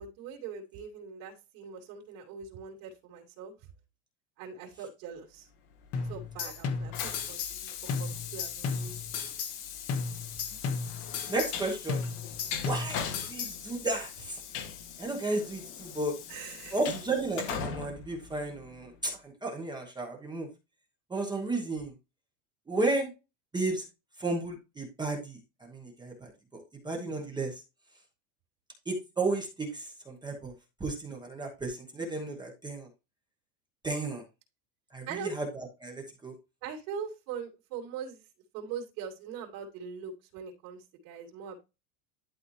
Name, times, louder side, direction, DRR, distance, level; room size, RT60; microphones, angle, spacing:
voice 1, 0.0-3.5 4.4-5.5 6.1-7.7 8.0-8.9 12.6-13.3 16.3-16.8 35.1-35.3 36.6-38.2 38.5-41.6, right 6 dB, 55° right, -2 dB, 2.7 m, -42 dB
Train, 5.8-19.0, left 8 dB, 65° left, 1.7 m, -41 dB
sound 1, 5.9-7.6 7.9-9.6 9.9-11.6 11.9-13.6, left 5 dB, 30° left, 1.0 m, -35 dB
voice 2, 11.3-12.0 12.6-14.4 15.0-16.1 16.7-20.5 21.1-21.9 22.7-23.1 23.5-23.8 24.2-27.6 28.9-30.5 30.8-32.9 33.8-34.2 34.9-36.3, right 2 dB, 10° right, 1 dB, 1.0 m, -33 dB
11.5 x 4.1 x 3.1 m, 0.26 s
supercardioid pair, 165°, 48 cm